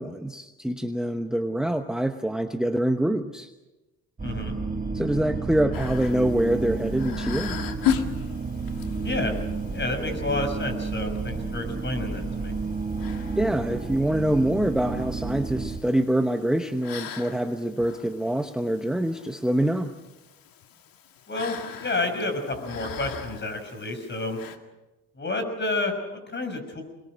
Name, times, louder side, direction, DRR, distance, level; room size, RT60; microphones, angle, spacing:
voice 1, 0.0-3.5 4.9-7.6 13.4-19.9, right 1 dB, ahead, 6 dB, 1.0 m, -25 dB
voice 2, 4.2-4.5 9.0-9.3 9.7-12.5 21.3-24.4 25.1-26.8, left 2 dB, 30° left, 6 dB, 6.1 m, -30 dB
sound 1, 4.2-15.8, right 4 dB, 20° right, 1.9 m, -31 dB
sound 2, 5.7-24.6, left 9 dB, 70° left, 2.1 m, -38 dB
26.5 x 21.0 x 6.3 m, 1.1 s
cardioid pair, 95°, 36 cm